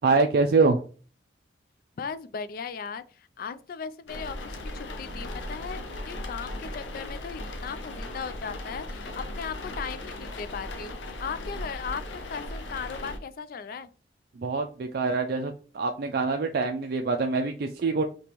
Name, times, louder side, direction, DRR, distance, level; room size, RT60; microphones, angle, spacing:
voice 1, 0.0-0.8 14.4-18.0, right 4 dB, 55° right, 0.4 m, -25 dB
voice 2, 2.0-13.9, left 6 dB, 50° left, 0.3 m, -37 dB
sound 1, 4.1-13.2, left 1 dB, 90° left, 0.7 m, -37 dB
5.2 x 2.9 x 2.9 m
head